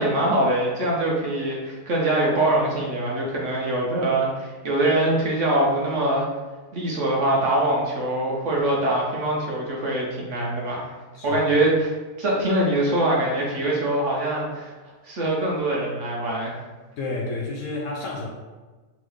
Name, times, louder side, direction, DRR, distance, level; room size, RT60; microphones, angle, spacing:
voice 1, 0.0-6.3 6.7-10.9 11.2-11.9 12.2-14.7 15.0-16.5, right 1 dB, 60° right, -3 dB, 0.9 m, -23 dB
voice 2, 17.0-18.3, left 2 dB, 65° left, -2 dB, 0.8 m, -30 dB
3.6 x 3.1 x 3.2 m, 1.3 s
omnidirectional pair, 1.7 m